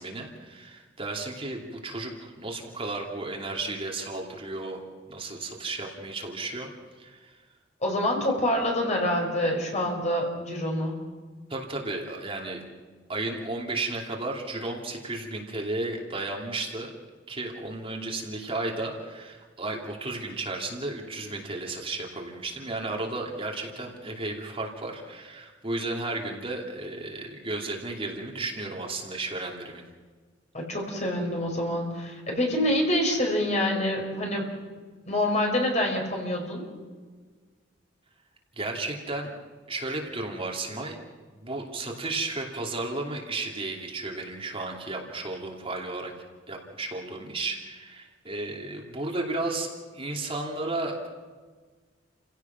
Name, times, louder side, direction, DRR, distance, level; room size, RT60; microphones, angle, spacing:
voice 1, 0.0-4.8 5.1-6.7 7.0-7.3 11.5-12.7 13.1-16.9 17.3-29.8 38.6-39.3 39.7-41.0 41.4-46.1 46.5-49.7 49.9-51.1, right 2 dB, 30° right, 0 dB, 2.8 m, -33 dB
voice 2, 7.8-11.0 30.5-34.5 35.1-36.6, left 1 dB, 40° left, 1 dB, 5.1 m, -26 dB
29.5 x 16.5 x 6.0 m, 1.5 s
head